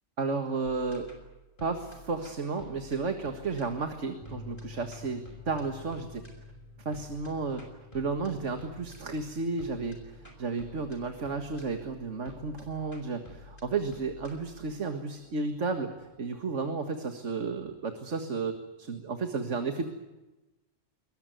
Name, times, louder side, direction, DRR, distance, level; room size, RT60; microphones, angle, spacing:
voice 1, 0.2-1.1 1.6-6.2 6.9-7.6 7.9-19.9, right 4 dB, 75° right, 6 dB, 2.1 m, -33 dB
sound 1, 0.6-17.8, left 2 dB, 40° left, 5.4 m, -52 dB
sound 2, 4.2-12.6, left 6 dB, 20° left, 4.0 m, -52 dB
23.5 x 20.5 x 9.3 m, 1.1 s
omnidirectional pair, 1.3 m